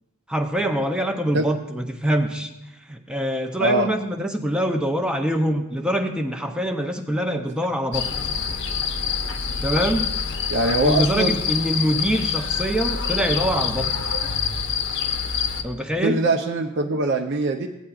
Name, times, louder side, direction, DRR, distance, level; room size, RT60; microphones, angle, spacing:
voice 1, 0.3-2.5 2.9-8.1 9.6-10.1 10.8-13.9 15.6-16.2, right 1 dB, 5° right, 4 dB, 0.5 m, -24 dB
sound 1, 7.9-15.6, left 6 dB, 55° left, 0.8 m, -26 dB
voice 2, 10.5-11.4 16.0-17.7, right 2 dB, 50° right, 2 dB, 0.5 m, -22 dB
16.0 x 8.7 x 2.4 m, 0.96 s
head